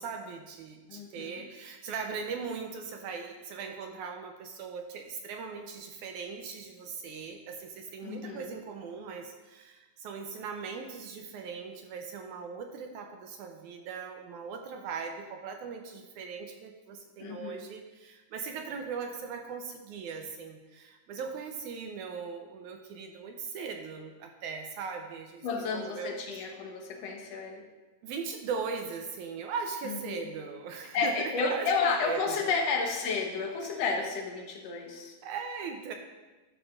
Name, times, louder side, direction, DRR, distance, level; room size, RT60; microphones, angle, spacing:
voice 1, 0.0-25.5 25.7-26.4 27.2-27.4 28.0-31.7 32.0-32.5 33.6-33.8 35.2-35.9, right 5 dB, 80° right, 4 dB, 1.8 m, -39 dB
voice 2, 0.9-1.4 8.0-8.5 17.2-17.7 25.4-27.6 30.1-30.2 30.9-35.2, left 4 dB, 60° left, 1 dB, 1.9 m, -31 dB
12.5 x 10.0 x 2.5 m, 1.2 s
omnidirectional pair, 4.0 m